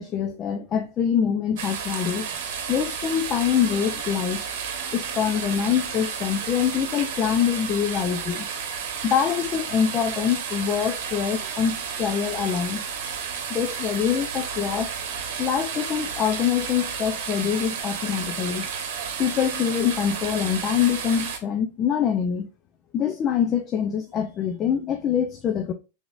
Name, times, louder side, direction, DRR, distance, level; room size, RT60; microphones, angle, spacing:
voice 1, 0.0-2.3 2.7-4.4 4.9-8.5 9.0-12.8 13.5-15.0 15.4-18.7 19.2-22.5 22.9-25.7, left 8 dB, 30° left, 0.5 m, -24 dB
sound 1, 1.6-21.4, right 6 dB, 65° right, 1.0 m, -32 dB
3.9 x 3.5 x 2.4 m
hypercardioid pair, 120°, 0 cm